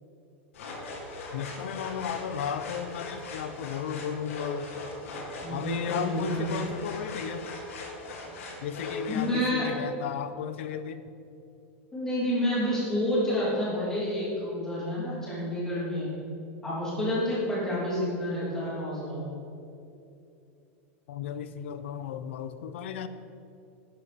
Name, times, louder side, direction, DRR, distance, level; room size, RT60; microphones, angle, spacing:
sound 1, 0.5-9.3, left 2 dB, 85° left, 2.3 m, -39 dB
voice 1, 1.3-4.7 5.5-7.5 8.6-11.0 21.1-23.1, left 8 dB, 65° left, 12 dB, 0.7 m, -35 dB
voice 2, 5.4-6.4 9.1-9.7 11.9-16.1 16.6-19.2, left 1 dB, 10° left, -8 dB, 2.9 m, -29 dB
11.5 x 9.7 x 4.3 m, 2.7 s
supercardioid pair, 180°, 7 cm